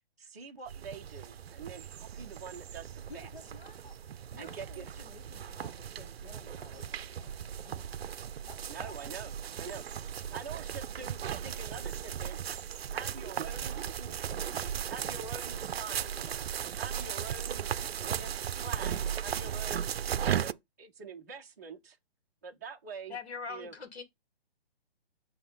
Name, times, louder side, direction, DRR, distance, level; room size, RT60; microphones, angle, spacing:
voice 1, 0.2-3.3 4.4-5.0 8.7-9.3 9.6-9.8 10.3-12.4 12.9-14.4 14.9-16.4 16.7-17.7 18.0-19.9 20.3-22.0 22.4-23.2 23.5-23.7, right 5 dB, 15° right, 0.6 m, -45 dB
sound 1, 0.7-20.5, right 9 dB, 70° right, 0.5 m, -37 dB
voice 2, 3.1-4.0 4.3-8.0 8.5-9.7 16.1-16.4, left 4 dB, 55° left, 1.1 m, -54 dB
voice 3, 23.1-24.0, left 5 dB, 90° left, 1.6 m, -41 dB
7.6 x 2.9 x 4.9 m
hypercardioid pair, 175°, 31 cm